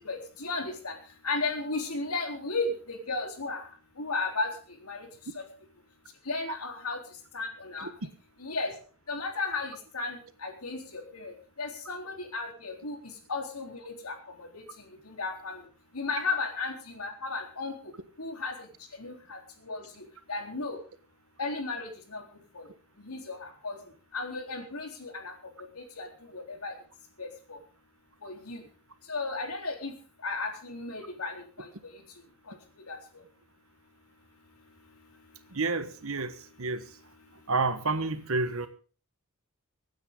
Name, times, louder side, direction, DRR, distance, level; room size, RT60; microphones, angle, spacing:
voice 1, 0.0-5.1 5.3-5.4 6.2-7.9 8.4-8.8 9.1-15.7 15.9-17.9 18.2-20.8 21.4-22.7 23.0-26.8 27.2-27.6 28.2-28.7 29.0-29.9 30.2-33.2 35.1-35.6 37.3-37.5, left 3 dB, 80° left, 3.7 m, -35 dB
voice 2, 35.5-37.0 37.5-38.7, right 3 dB, 65° right, 1.3 m, -30 dB
25.0 x 9.4 x 3.8 m
head